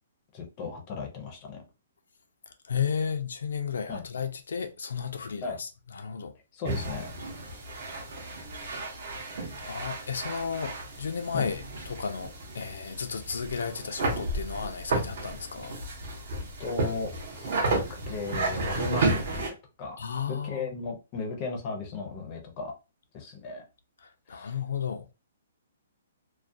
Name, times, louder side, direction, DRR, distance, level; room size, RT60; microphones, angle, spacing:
voice 1, 0.3-1.6 3.9-4.0 5.4-5.6 6.5-7.1 11.3-11.5 16.6-19.5 19.8-20.0 20.3-22.7 23.1-23.7 24.3-24.6, left 4 dB, 20° left, 0.5 m, -36 dB
voice 2, 2.5-6.3 8.5-8.9 9.4-15.8 20.0-20.7 24.0-25.1, left 6 dB, 85° left, 0.4 m, -34 dB
sound 1, 6.6-19.5, right 2 dB, 45° right, 0.7 m, -32 dB
2.3 x 2.1 x 2.5 m
hypercardioid pair, 175°, 0 cm